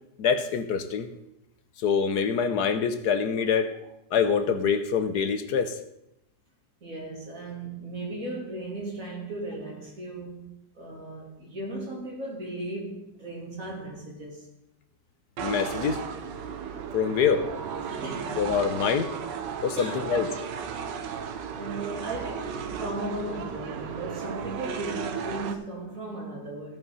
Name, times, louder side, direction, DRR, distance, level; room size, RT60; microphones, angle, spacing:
voice 1, 0.2-1.1 1.8-3.7 4.1-5.8 15.4-16.0 16.9-17.5 18.4-19.1 19.6-20.3, left 6 dB, 65° left, 1.3 m, -25 dB
voice 2, 6.8-14.5 17.8-18.8 19.8-20.1 21.6-26.8, right 2 dB, 45° right, 3.3 m, -36 dB
sound 1, 15.4-25.6, right 7 dB, 75° right, 1.6 m, -35 dB
16.0 x 5.6 x 5.5 m
omnidirectional pair, 1.9 m